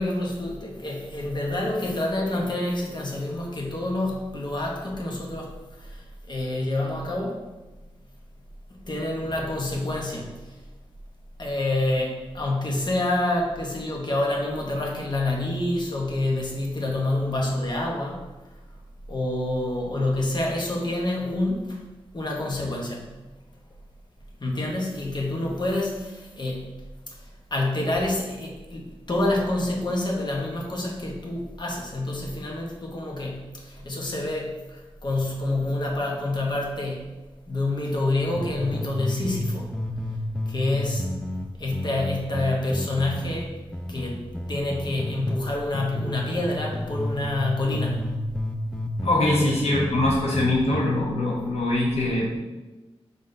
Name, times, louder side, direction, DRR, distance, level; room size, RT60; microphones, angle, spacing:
voice 1, 0.0-5.5 5.8-6.0 6.3-7.4 8.9-10.3 11.4-18.2 19.1-21.8 22.1-23.1 24.4-26.7 27.5-37.1 37.5-39.7 40.5-41.2 41.6-43.5 43.9-44.2 44.5-48.2 49.2-49.4, left 2 dB, 45° left, -1 dB, 1.0 m, -27 dB
sound 1, 38.4-39.5 39.7-45.4 45.7-47.5 47.7-50.8, left 1 dB, 5° left, 0.4 m, -31 dB
voice 2, 49.0-52.4, left 1 dB, 90° left, -2 dB, 0.8 m, -23 dB
5.3 x 3.7 x 2.6 m, 1.1 s
wide cardioid pair, 75°, 10 cm